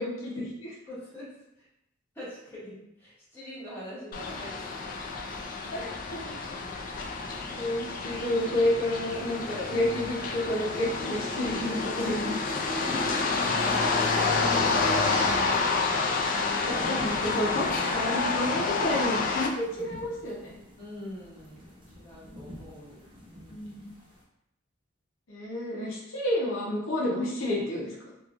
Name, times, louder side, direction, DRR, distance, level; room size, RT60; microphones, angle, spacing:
voice 1, 0.0-0.7 4.3-4.4 5.7-6.2 7.5-12.4 16.3-20.6 23.5-23.8 25.3-27.9, left 1 dB, 70° left, -5 dB, 0.7 m, -30 dB
voice 2, 0.9-1.7 2.1-5.2 6.3-6.5 11.4-11.7 12.7-14.5 20.8-23.7, left 1 dB, 10° left, -11 dB, 1.2 m, -44 dB
sound 1, 4.1-19.5, left 4 dB, 45° left, 0.3 m, -29 dB
sound 2, 9.1-24.2, left 1 dB, 25° right, 0.6 m, -46 dB
2.9 x 2.4 x 2.4 m, 0.82 s
head